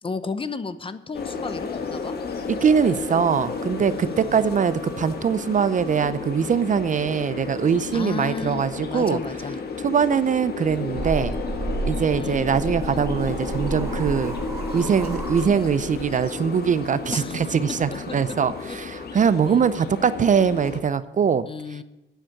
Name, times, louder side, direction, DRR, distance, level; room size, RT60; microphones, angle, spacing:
voice 1, 0.0-2.1 3.9-4.5 7.9-9.6 12.1-12.5 17.1-17.4 18.7-18.8 19.5-19.6 21.5-21.8, left 4 dB, 25° left, 13 dB, 0.8 m, -33 dB
sound 1, 1.1-20.8, left 4 dB, 55° left, 1.6 m, -32 dB
voice 2, 2.6-9.2 9.8-11.4 11.8-14.3 14.7-21.5, right 7 dB, 40° right, 14 dB, 0.6 m, -22 dB
sound 2, 10.7-16.1, right 2 dB, 15° right, 4.2 m, -32 dB
9.0 x 7.4 x 8.9 m, 0.96 s
cardioid pair, 90°, 20 cm